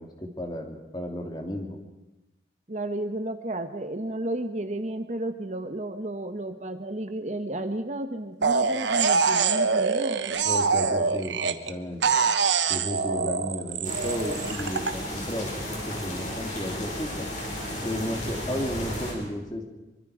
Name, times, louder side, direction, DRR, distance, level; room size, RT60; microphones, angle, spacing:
voice 1, 0.0-1.8 10.4-12.0 12.7-17.3 17.8-19.6, equal, 25° left, 3 dB, 2.9 m, -34 dB
voice 2, 2.7-10.4, right 1 dB, 40° right, 8 dB, 1.1 m, -32 dB
sound 1, 8.4-11.7 12.0-14.9, right 5 dB, 80° right, 1.2 m, -24 dB
sound 2, 13.8-19.1, equal, 40° left, 5.9 m, -34 dB
25.0 x 24.5 x 5.0 m, 1.0 s
head